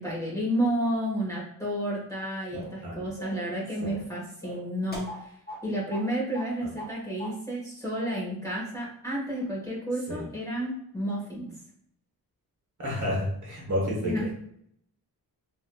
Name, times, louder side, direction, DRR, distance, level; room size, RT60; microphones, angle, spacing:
voice 1, 0.0-5.3 5.6-11.5 14.0-14.2, equal, 10° left, -6 dB, 1.3 m, -31 dB
sound 1, 2.5-2.8 3.2-3.5 3.8-4.1 4.4-5.6 5.9-6.1 6.3-6.9 7.2-7.4, right 1 dB, 25° left, 1.0 m, -40 dB
voice 2, 2.5-3.1 3.8-4.0 6.6-6.7 10.1-10.3 12.8-14.3, equal, 50° right, -2 dB, 1.1 m, -31 dB
3.5 x 2.8 x 2.3 m, 0.70 s
wide cardioid pair, 140°, 38 cm